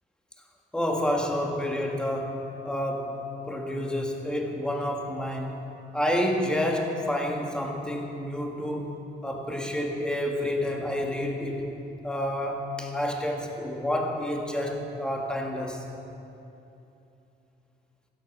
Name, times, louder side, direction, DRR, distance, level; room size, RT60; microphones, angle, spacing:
voice 1, 0.7-5.6 5.9-11.7 12.0-15.9, left 1 dB, 5° left, 1 dB, 1.6 m, -29 dB
15.0 x 13.5 x 6.0 m, 2.8 s
cardioid pair, 165°, 18 cm